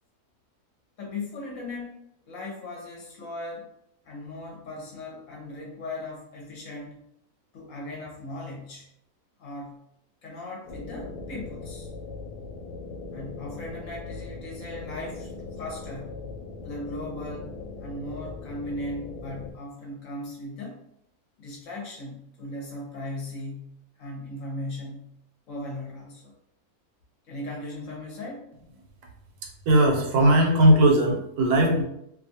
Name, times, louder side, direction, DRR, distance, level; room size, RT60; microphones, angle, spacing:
voice 1, 1.0-3.7 4.0-7.0 7.5-8.9 9.4-9.8 10.2-11.9 13.1-15.3 15.6-16.2 16.6-20.8 21.4-25.1 25.5-26.3 27.3-28.5, left 1 dB, 65° left, -3 dB, 1.0 m, -38 dB
sound 1, 10.7-19.5, left 3 dB, 90° left, 1.1 m, -39 dB
voice 2, 29.7-31.8, right 1 dB, 75° right, 1 dB, 1.1 m, -18 dB
2.6 x 2.3 x 2.7 m, 0.76 s
omnidirectional pair, 1.6 m